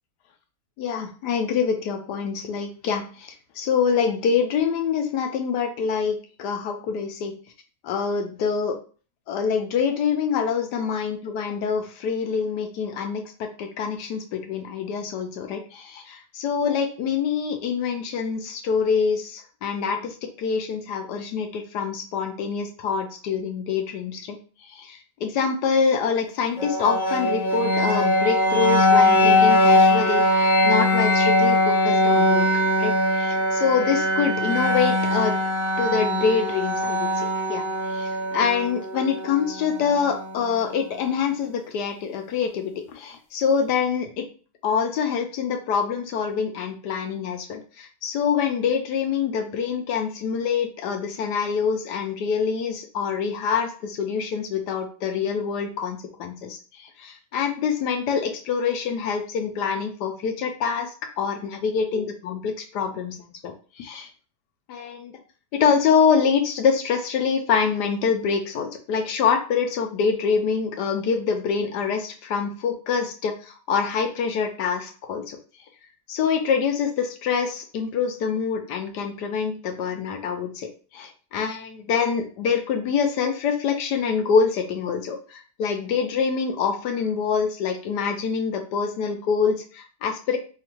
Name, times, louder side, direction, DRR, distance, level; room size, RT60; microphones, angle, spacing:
voice 1, 0.8-7.3 7.9-8.8 9.3-13.2 13.6-24.4 24.6-32.5 32.8-35.3 35.8-44.3 44.6-60.9 61.2-63.2 63.4-64.1 64.7-65.1 65.5-75.4 76.1-80.7 80.9-90.4, left 6 dB, 75° left, 5 dB, 1.1 m, -25 dB
sound 1, 26.6-40.5, left 1 dB, 55° left, 0.8 m, -21 dB
5.1 x 2.4 x 2.9 m, 0.39 s
omnidirectional pair, 1.9 m